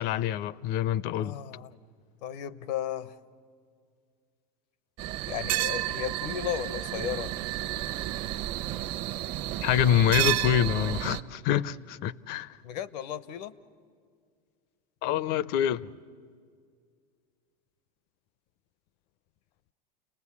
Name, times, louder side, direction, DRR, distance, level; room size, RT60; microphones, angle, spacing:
voice 1, 0.0-1.4 9.6-12.6 15.0-15.9, left 10 dB, 50° left, 0.6 m, -26 dB
voice 2, 1.1-1.8 2.2-3.2 5.3-7.3 12.6-13.5, left 10 dB, 80° left, 1.0 m, -35 dB
sound 1, 5.0-11.2, right 15 dB, 50° right, 0.9 m, -31 dB
29.5 x 19.5 x 8.5 m
supercardioid pair, 135°, 21 cm